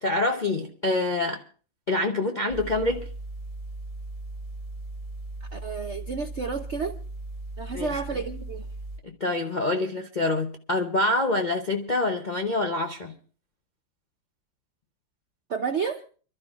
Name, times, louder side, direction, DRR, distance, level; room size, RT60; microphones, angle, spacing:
voice 1, 0.0-1.4 1.9-3.1 7.7-7.9 9.0-13.1, left 2 dB, 50° left, 0.5 m, -26 dB
sound 1, 2.5-9.0, right 2 dB, 20° right, 1.1 m, -38 dB
voice 2, 5.4-7.0 7.6-8.7 15.5-16.0, right 5 dB, 65° right, 0.7 m, -31 dB
29.5 x 12.5 x 2.4 m
omnidirectional pair, 2.1 m